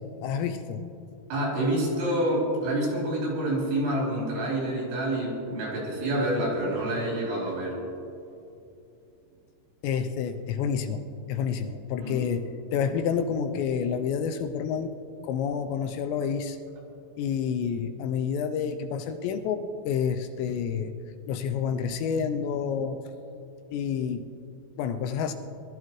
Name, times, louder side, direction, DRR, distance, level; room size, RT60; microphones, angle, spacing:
voice 1, 0.2-0.9 9.8-11.0 11.3-12.4 12.7-15.0 15.2-16.6 17.2-20.9 21.3-23.0 23.7-24.2 24.8-25.3, left 7 dB, 80° left, 7 dB, 2.7 m, -29 dB
voice 2, 1.3-7.8 12.0-12.2, right 1 dB, 80° right, -4 dB, 5.9 m, -27 dB
22.0 x 12.5 x 3.1 m, 2.7 s
omnidirectional pair, 5.3 m